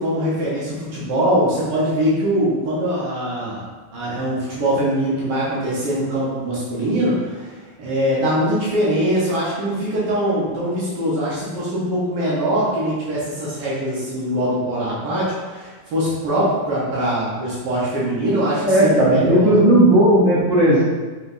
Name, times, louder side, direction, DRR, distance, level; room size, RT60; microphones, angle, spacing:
voice 1, 0.0-3.6 3.9-19.5, equal, 85° right, -8 dB, 1.5 m, -22 dB
voice 2, 18.6-20.8, right 1 dB, 55° right, -6 dB, 1.1 m, -14 dB
4.5 x 3.3 x 2.5 m, 1.3 s
omnidirectional pair, 1.8 m